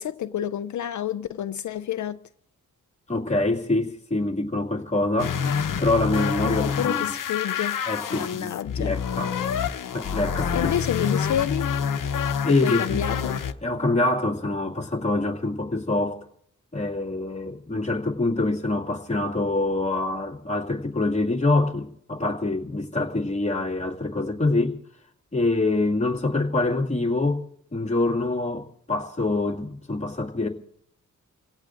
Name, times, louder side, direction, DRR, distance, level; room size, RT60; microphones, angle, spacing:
voice 1, 0.0-2.2 6.4-7.8 8.1-8.9 10.5-11.7 12.5-13.4, left 10 dB, 65° left, 0.5 m, -29 dB
voice 2, 3.1-5.4 5.8-7.0 7.9-9.3 9.9-10.7 12.4-13.0 13.6-16.2 16.7-24.8 25.3-27.4 27.7-30.5, left 2 dB, 20° left, 2.2 m, -25 dB
sound 1, 5.2-13.5, left 7 dB, 80° left, 0.9 m, -27 dB
30.0 x 17.0 x 2.6 m
cardioid pair, 85°, 31 cm